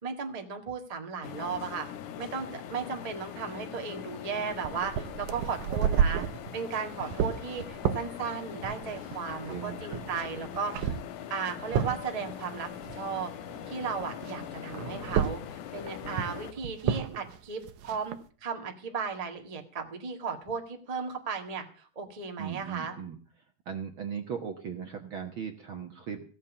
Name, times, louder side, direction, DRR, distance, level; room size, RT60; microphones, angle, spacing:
voice 1, 0.0-1.9 2.2-6.3 6.5-11.0 11.3-13.3 13.7-23.0, right 5 dB, 20° right, 3 dB, 1.2 m, -35 dB
sound 1, 1.2-16.5, left 9 dB, 80° left, 2.3 m, -42 dB
sound 2, 4.5-13.7 14.0-18.2, right 8 dB, 75° right, 2.2 m, -32 dB
voice 2, 9.5-10.1 22.4-23.2 23.7-26.2, right 7 dB, 55° right, 3 dB, 1.6 m, -38 dB
16.5 x 7.4 x 8.2 m, 0.43 s
omnidirectional pair, 3.6 m